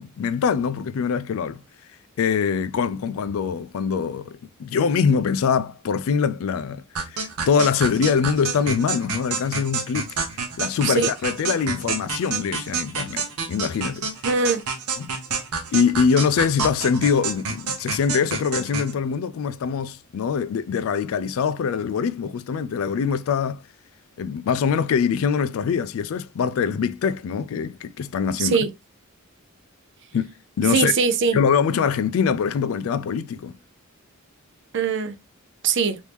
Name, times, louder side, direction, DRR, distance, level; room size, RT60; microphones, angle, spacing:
voice 1, 0.0-1.6 2.2-6.8 7.1-10.2 10.6-14.1 15.0-15.1 15.7-23.6 24.2-28.6 30.1-30.9 31.3-33.5, left 6 dB, 65° left, 0.3 m, -23 dB
sound 1, 7.0-18.9, right 5 dB, 80° right, 0.8 m, -29 dB
voice 2, 14.2-14.6 28.4-28.7 30.7-31.4 34.7-35.1 35.6-36.0, right 5 dB, 55° right, 0.5 m, -21 dB
3.1 x 2.7 x 3.3 m
head